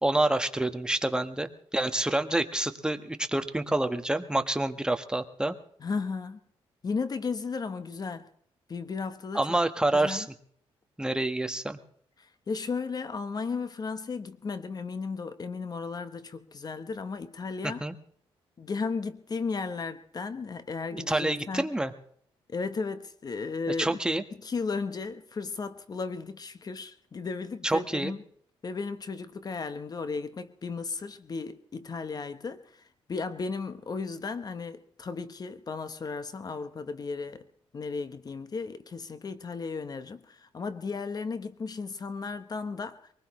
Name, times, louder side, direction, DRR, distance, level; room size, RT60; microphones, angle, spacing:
voice 1, 0.0-5.6 9.3-10.3 11.0-11.8 17.6-17.9 20.9-21.9 23.8-24.2 27.6-28.1, right 1 dB, 10° right, 1.3 m, -27 dB
voice 2, 5.8-6.4 6.8-8.3 8.7-9.6 9.9-10.3 12.2-17.8 18.6-21.7 22.5-24.0 24.4-28.2 28.6-37.4 37.7-43.1, left 4 dB, 40° left, 1.0 m, -35 dB
23.5 x 19.5 x 3.1 m
cardioid pair, 75°, 10 cm